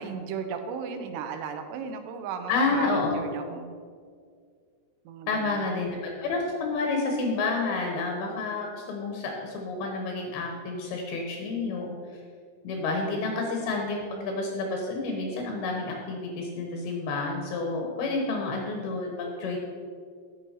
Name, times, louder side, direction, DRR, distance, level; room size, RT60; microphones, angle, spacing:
voice 1, 0.0-3.8 5.1-5.6 12.8-13.2, right 6 dB, 90° right, 7 dB, 2.8 m, -36 dB
voice 2, 2.5-3.2 5.3-11.9 12.6-19.6, left 3 dB, 70° left, 1 dB, 2.9 m, -29 dB
12.5 x 6.3 x 4.4 m, 2.1 s
omnidirectional pair, 4.9 m